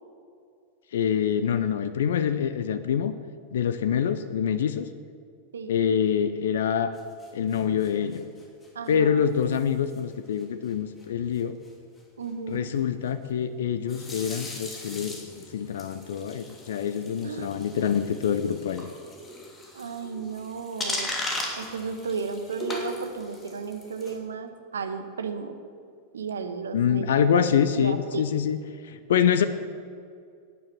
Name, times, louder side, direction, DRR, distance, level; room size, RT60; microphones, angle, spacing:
voice 1, 0.9-3.1 3.5-4.9 5.7-6.9 7.3-8.3 8.9-11.5 12.5-15.2 15.5-18.9 26.7-28.6 28.8-29.5, left 8 dB, 60° left, 13 dB, 0.7 m, -25 dB
sound 1, 6.9-8.9 9.4-9.6 9.9-10.1 10.4-10.5 10.7-10.8 11.0-11.1 11.3-11.7 13.9-24.2, left 1 dB, 15° left, 2.8 m, -38 dB
voice 2, 8.7-9.3 12.2-12.7 17.2-17.5 19.7-21.1 21.6-25.6 26.1-27.5 27.7-28.2, right 5 dB, 70° right, 8 dB, 1.3 m, -34 dB
17.5 x 9.4 x 7.1 m, 2.3 s
figure-of-eight pair, 90°, 0 cm